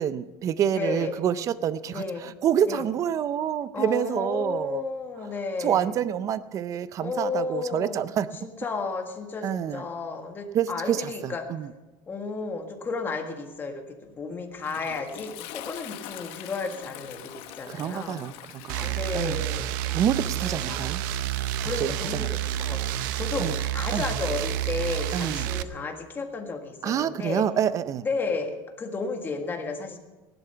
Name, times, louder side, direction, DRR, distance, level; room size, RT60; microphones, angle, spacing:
voice 1, 0.0-4.8 5.6-8.3 9.4-9.8 10.5-11.7 17.7-19.5 19.9-21.0 21.8-22.3 23.4-23.6 23.9-24.1 25.1-25.5 26.8-28.1, right 9 dB, 30° right, 15 dB, 0.5 m, -27 dB
voice 2, 0.7-1.1 1.9-2.3 2.7-2.8 3.7-5.9 7.0-8.1 8.4-11.4 12.1-18.2 18.7-20.0 20.3-20.9 21.6-27.4 28.0-30.0, left 4 dB, 20° left, 4 dB, 1.6 m, -33 dB
Toilet flush, 14.1-22.4, left 13 dB, 65° left, 1.0 m, -45 dB
sound 1, 18.7-25.6, right 12 dB, 90° right, 0.7 m, -29 dB
17.0 x 11.0 x 5.7 m, 1.1 s
cardioid pair, 160°, 10 cm